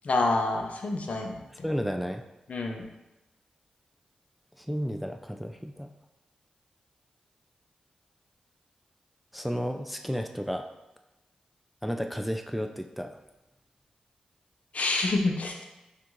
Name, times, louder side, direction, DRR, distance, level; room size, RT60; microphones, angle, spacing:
voice 1, 0.0-1.7 2.5-2.8 14.7-15.6, left 2 dB, 60° left, 2 dB, 0.6 m, -27 dB
voice 2, 1.6-2.2 4.6-5.9 9.3-10.7 11.8-13.2, equal, ahead, 5 dB, 0.3 m, -32 dB
6.1 x 2.5 x 3.0 m, 1.0 s
cardioid pair, 50°, 3 cm